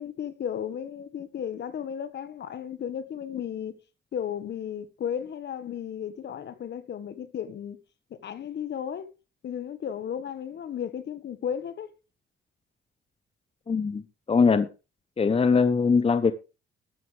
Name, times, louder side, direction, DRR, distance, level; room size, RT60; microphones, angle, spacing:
voice 1, 0.0-3.7 4.1-7.8 8.1-9.1 9.4-11.9, left 8 dB, 60° left, 1.7 m, -34 dB
voice 2, 13.7-14.7 15.2-16.3, left 5 dB, 30° left, 1.0 m, -22 dB
13.0 x 12.5 x 3.5 m
cardioid pair, 90°, 20 cm